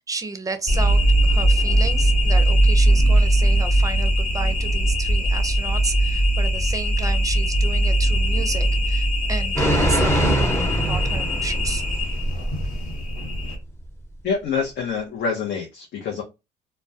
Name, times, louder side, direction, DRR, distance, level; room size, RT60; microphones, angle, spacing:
voice 1, 0.1-11.8, right 3 dB, 20° right, 0.5 m, -32 dB
sound 1, 0.7-13.6, right 1 dB, 45° left, 1.2 m, -20 dB
sound 2, 9.6-12.5 12.7-12.8, right 1 dB, 15° left, 0.9 m, -23 dB
voice 2, 14.2-16.2, left 5 dB, 65° left, 0.7 m, -26 dB
2.2 x 2.1 x 2.7 m
supercardioid pair, 70°, 18 cm